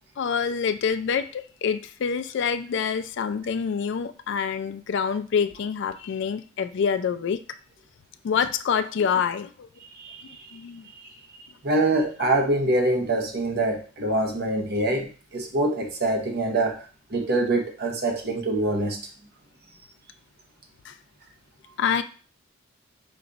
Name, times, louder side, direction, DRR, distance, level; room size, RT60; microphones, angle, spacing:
voice 1, 0.2-7.4 8.2-9.7 10.5-10.8 20.9-21.0 21.8-22.0, left 6 dB, 60° left, 11 dB, 0.3 m, -26 dB
voice 2, 10.0-10.4 11.6-16.8 17.1-19.0, right 2 dB, 55° right, 3 dB, 0.9 m, -25 dB
4.9 x 2.3 x 3.9 m, 0.38 s
head